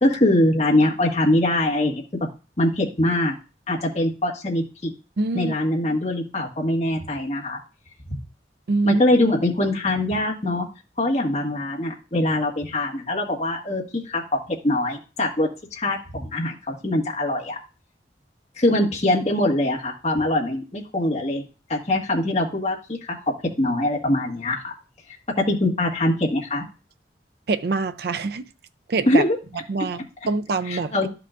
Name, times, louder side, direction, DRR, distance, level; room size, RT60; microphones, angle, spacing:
voice 1, 0.0-2.3 2.6-3.4 3.7-4.9 5.3-7.6 8.8-10.7 11.0-17.6 18.6-24.7 25.3-26.7 29.1-29.4 30.7-31.1, left 1 dB, 35° left, 1.6 m, -23 dB
voice 2, 5.2-5.5 8.7-9.0 27.5-28.5 28.9-29.2 29.7-30.9, right 3 dB, 65° right, 0.4 m, -24 dB
12.5 x 5.8 x 2.5 m
head